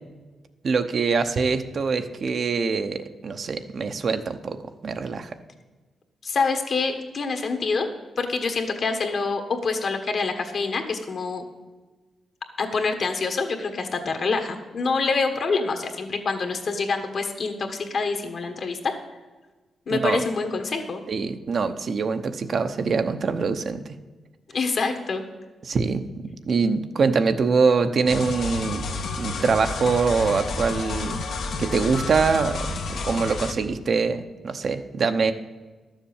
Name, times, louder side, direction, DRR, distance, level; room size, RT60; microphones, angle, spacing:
voice 1, 0.6-4.6 4.8-5.3 19.9-20.2 21.1-23.8 25.6-26.0 26.4-28.9 29.2-31.2 31.6-35.3, right 5 dB, 50° right, 8 dB, 0.8 m, -24 dB
voice 2, 6.2-7.9 8.2-11.4 12.6-18.9 19.9-21.0 24.5-25.2, left 4 dB, 55° left, 5 dB, 1.5 m, -26 dB
sound 1, 28.1-33.5, left 3 dB, 75° left, 1.3 m, -30 dB
12.0 x 7.3 x 7.1 m, 1.3 s
cardioid pair, 115°, 0 cm